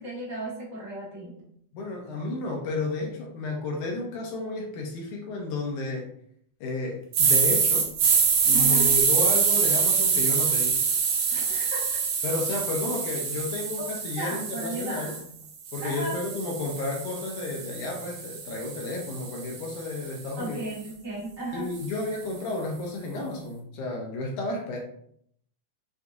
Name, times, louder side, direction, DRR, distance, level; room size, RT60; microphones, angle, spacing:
voice 1, 0.0-1.3 8.5-8.9 11.3-12.0 14.1-15.2 15.8-16.2 20.4-21.7, right 1 dB, 20° right, -7 dB, 0.7 m, -35 dB
voice 2, 1.7-6.1 6.6-7.9 8.5-10.8 12.2-15.2 15.7-20.6 21.5-24.8, left 2 dB, 80° left, -1 dB, 2.1 m, -32 dB
sound 1, 7.1-15.2 15.7-19.9, right 6 dB, 80° right, 2.2 m, -25 dB
6.6 x 2.4 x 2.5 m, 0.67 s
omnidirectional pair, 3.5 m